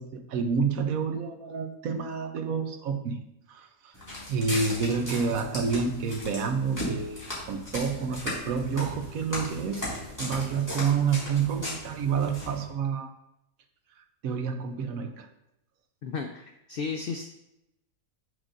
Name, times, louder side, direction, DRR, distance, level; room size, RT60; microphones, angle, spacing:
voice 1, 0.0-3.2 3.5-3.9 4.3-7.2 7.5-9.9 10.2-13.1 14.2-15.3, right 5 dB, 75° right, 6 dB, 1.1 m, -29 dB
Walk footsteps, 3.9-12.6, left 1 dB, 10° left, 2.2 m, -37 dB
voice 2, 16.0-17.3, left 5 dB, 85° left, 5 dB, 0.5 m, -34 dB
7.5 x 6.4 x 2.5 m, 0.87 s
omnidirectional pair, 1.5 m